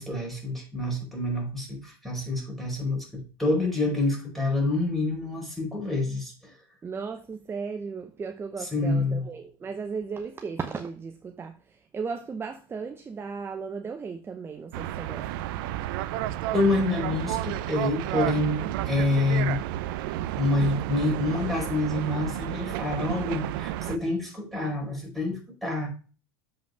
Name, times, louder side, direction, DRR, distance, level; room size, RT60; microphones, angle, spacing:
voice 1, 0.0-6.5 8.6-9.2 16.5-19.6 20.4-25.9, left 2 dB, ahead, 4.9 m, -27 dB
voice 2, 6.8-11.6 11.9-15.5, right 5 dB, 20° right, 0.8 m, -35 dB
sound 1, 14.7-24.0, right 13 dB, 60° right, 0.7 m, -31 dB
7.7 x 5.8 x 5.1 m
hypercardioid pair, 110°, 13 cm